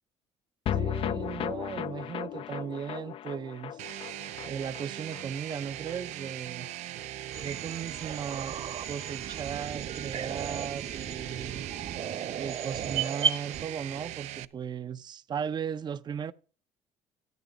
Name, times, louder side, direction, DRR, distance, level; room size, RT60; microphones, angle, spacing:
sound 1, 0.7-7.1 7.4-7.5 7.7-7.8, left 10 dB, 50° left, 0.4 m, -36 dB
voice 1, 0.7-3.8 4.4-6.7 7.4-8.5 8.9-11.7 12.4-16.3, right 7 dB, 35° right, 0.6 m, -37 dB
sound 2, 3.8-14.4, right 14 dB, 75° right, 0.6 m, -40 dB
sound 3, 7.3-13.6, right 7 dB, 60° right, 1.4 m, -35 dB
13.5 x 8.8 x 3.9 m
cardioid pair, 105°, 12 cm